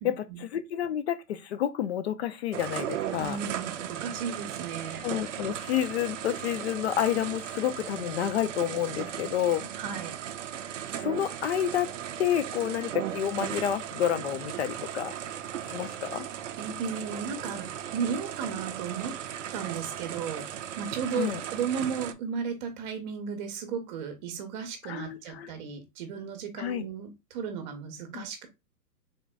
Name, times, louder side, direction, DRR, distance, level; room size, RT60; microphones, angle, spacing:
voice 1, 0.0-0.4 3.2-5.0 9.8-10.2 16.6-19.2 19.5-28.5, right 6 dB, 30° right, 1.0 m, -35 dB
voice 2, 0.5-3.4 5.0-9.7 11.0-11.9 12.2-15.1 15.6-16.3 21.1-21.4 24.8-25.5 26.6-26.8 28.1-28.3, left 10 dB, 40° left, 0.6 m, -29 dB
sound 1, 2.5-22.1, right 10 dB, 50° right, 0.5 m, -37 dB
3.8 x 3.7 x 2.3 m
hypercardioid pair, 135°, 48 cm